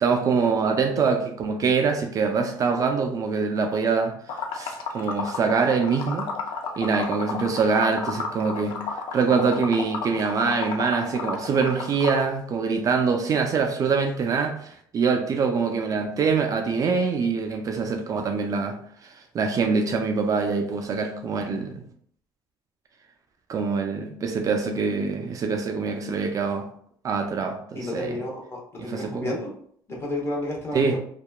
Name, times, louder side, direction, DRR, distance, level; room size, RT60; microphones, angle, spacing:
voice 1, 0.0-6.3 6.8-8.8 9.1-21.8 23.5-26.7 27.0-28.2 28.8-29.3 30.7-31.0, right 5 dB, 40° right, 4 dB, 0.4 m, -24 dB
Liquid, 4.3-12.3, left 5 dB, 70° left, 0.5 m, -32 dB
voice 2, 27.7-29.5 29.9-31.0, left 1 dB, 30° left, -2 dB, 0.9 m, -31 dB
2.9 x 2.3 x 2.2 m, 0.62 s
cardioid pair, 105°, 9 cm